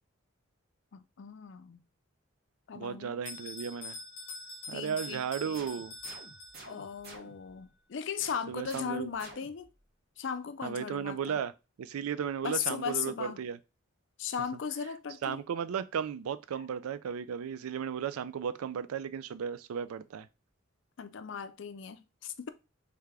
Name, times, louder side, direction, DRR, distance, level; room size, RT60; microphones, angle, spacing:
voice 1, 0.9-1.8 2.7-3.1 4.7-5.7 6.7-9.7 10.2-11.4 12.4-13.4 14.2-15.4 16.5-16.6 21.0-22.5, left 7 dB, 60° left, 0.4 m, -37 dB
voice 2, 2.7-4.0 4.7-6.0 8.5-9.1 10.6-11.5 11.8-13.6 15.2-20.3, right 7 dB, 85° right, 0.3 m, -35 dB
Bell, 3.2-7.0, left 2 dB, 25° left, 0.9 m, -45 dB
sound 1, 5.5-7.6 8.2-9.8, right 3 dB, 45° right, 0.8 m, -51 dB
3.4 x 3.3 x 3.5 m
head